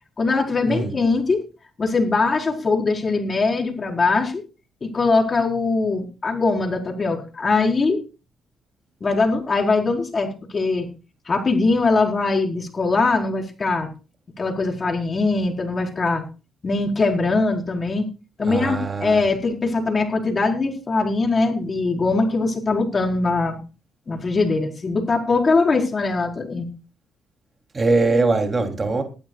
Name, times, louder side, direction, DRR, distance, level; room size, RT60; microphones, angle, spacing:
voice 1, 0.2-1.4 1.8-4.4 4.8-8.0 9.0-10.9 11.3-13.9 14.4-16.2 16.6-18.1 18.4-23.6 24.1-26.7, left 3 dB, 35° left, 2 dB, 4.9 m, -21 dB
voice 2, 18.4-19.2 27.7-29.0, right 3 dB, 30° right, 4 dB, 3.2 m, -21 dB
20.5 x 12.5 x 2.4 m, 0.32 s
cardioid pair, 90°, 0 cm